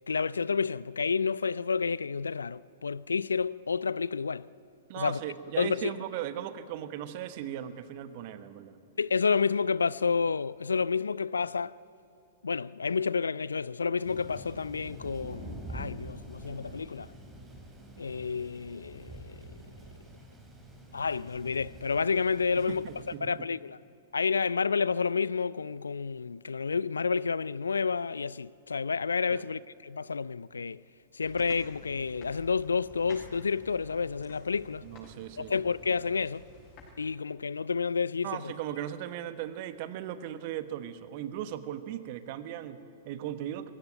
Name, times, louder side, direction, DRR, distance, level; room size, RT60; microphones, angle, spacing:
voice 1, 0.1-4.5 5.0-5.2 5.6-5.9 9.0-11.7 12.4-17.1 18.0-19.3 20.9-22.9 23.2-23.8 24.1-30.8 31.1-34.8 35.4-36.4 37.0-38.5, left 5 dB, 80° left, 0.4 m, -30 dB
voice 2, 4.9-8.7 22.5-23.5 29.3-29.5 34.8-35.6 38.2-43.7, right 11 dB, 50° right, 1.3 m, -38 dB
Thunder, 14.0-23.2, right 1 dB, 15° right, 4.2 m, -46 dB
sound 1, 31.2-36.9, left 3 dB, 40° left, 7.2 m, -51 dB
20.5 x 16.5 x 9.1 m
figure-of-eight pair, 105°, 0 cm